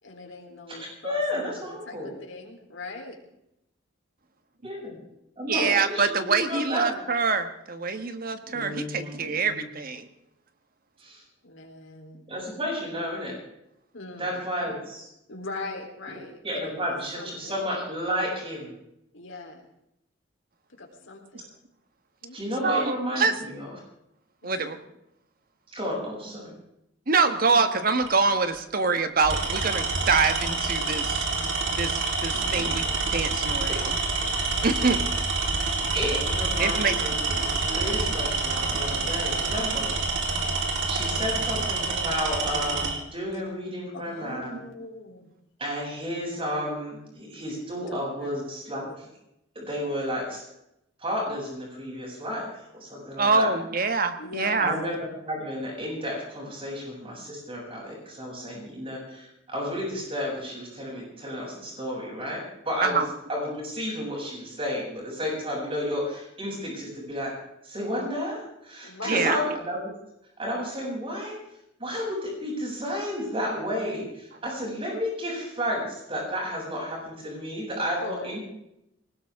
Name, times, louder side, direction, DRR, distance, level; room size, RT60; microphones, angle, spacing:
voice 1, 0.0-3.2 11.4-12.2 13.9-14.4 15.3-17.6 19.1-19.7 20.7-21.5 22.2-22.5 24.4-24.8 27.3-27.4 43.3-43.4 43.9-45.3 48.2-48.4 48.8-49.0 54.2-54.7 68.8-69.3 78.0-78.4, left 2 dB, 90° left, 2 dB, 3.8 m, -40 dB
voice 2, 1.0-2.1 4.6-5.0 5.4-6.9 8.5-9.6 11.0-11.2 12.3-13.4 14.2-15.1 16.4-18.7 22.3-23.7 25.7-26.5 32.3-32.7 35.9-39.9 40.9-44.6 45.6-48.8 49.5-50.4 51.0-53.5 54.6-55.0 55.2-63.0 63.3-67.3 67.6-69.9 70.4-71.3 71.8-78.4, equal, 30° right, -3 dB, 7.8 m, -32 dB
voice 3, 5.5-10.1 22.6-22.8 23.2-23.3 24.4-24.8 27.1-31.3 31.8-32.8 33.1-33.9 34.6-35.0 36.6-37.0 53.2-54.8 62.8-63.1 69.1-69.4, right 4 dB, 50° right, 8 dB, 1.5 m, -25 dB
Tools, 28.0-28.3 29.2-43.0, right 3 dB, 70° right, 3.6 m, -27 dB
20.5 x 19.0 x 3.7 m, 0.81 s
head